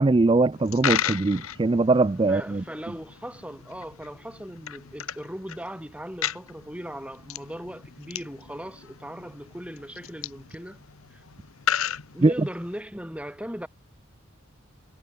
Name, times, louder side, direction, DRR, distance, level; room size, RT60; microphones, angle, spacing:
voice 1, 0.0-2.6 12.2-12.5, right 3 dB, 25° right, 0.3 m, -21 dB
Coin (dropping), 0.5-12.8, left 9 dB, 85° left, 1.0 m, -35 dB
voice 2, 2.3-10.8 11.1-11.2 12.1-13.7, equal, 5° right, 7.7 m, -38 dB
head